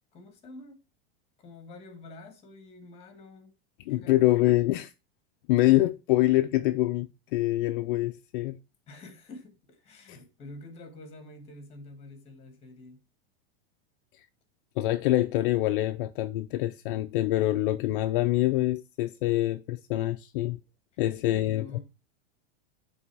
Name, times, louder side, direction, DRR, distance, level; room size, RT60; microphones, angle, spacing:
voice 1, 0.1-0.8 1.4-3.5 3.9-4.2 8.9-13.0 21.2-21.8, left 2 dB, 20° left, 1.6 m, -47 dB
voice 2, 3.8-4.9 5.5-8.6 10.1-10.2 14.1-14.3 14.8-20.6 21.0-21.8, left 16 dB, 60° left, 0.5 m, -25 dB
9.5 x 3.4 x 4.6 m
supercardioid pair, 170°, 30 cm